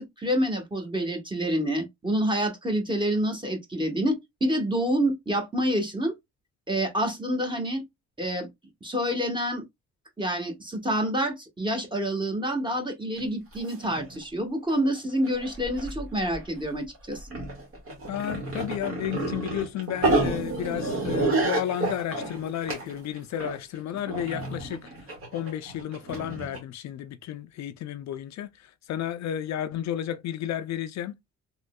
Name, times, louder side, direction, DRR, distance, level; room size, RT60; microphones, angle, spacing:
voice 1, 0.0-6.1 6.7-7.8 8.2-8.5 8.8-9.6 10.2-17.3, equal, 15° right, 1.3 m, -27 dB
sound 1, 13.2-13.3 13.5-14.2 14.7-15.0 15.2-16.4 16.9-26.6, right 2 dB, 50° right, 1.8 m, -30 dB
voice 2, 18.1-24.8 25.3-31.1, left 10 dB, 65° left, 0.4 m, -32 dB
3.5 x 3.0 x 2.2 m
cardioid pair, 90°, 30 cm